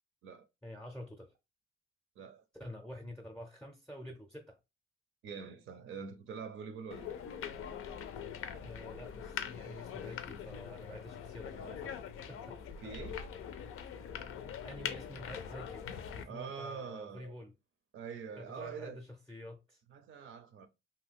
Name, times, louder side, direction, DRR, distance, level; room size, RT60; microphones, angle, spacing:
voice 1, 0.6-1.3 2.6-4.6 8.6-12.0 12.3-12.6 14.6-17.5 18.4-19.8, left 1 dB, 5° left, 0.5 m, -48 dB
voice 2, 5.2-7.1 12.8-13.3 16.3-17.4 17.9-19.0 19.9-20.7, right 6 dB, 70° right, 0.5 m, -45 dB
sound 1, 6.9-16.2, left 8 dB, 85° left, 0.5 m, -43 dB
2.7 x 2.3 x 3.4 m
cardioid pair, 110°, 21 cm